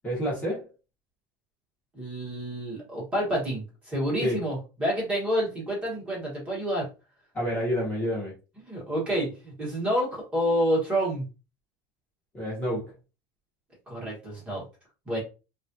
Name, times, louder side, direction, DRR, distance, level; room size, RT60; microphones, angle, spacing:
voice 1, 0.0-0.7 4.2-4.4 7.3-8.3 12.3-12.9, equal, 15° left, 1.1 m, -28 dB
voice 2, 1.9-6.9 8.7-11.2 13.9-14.6 15.0-15.2, equal, 15° right, 1.3 m, -28 dB
3.1 x 2.5 x 2.7 m
cardioid pair, 180°, 9 cm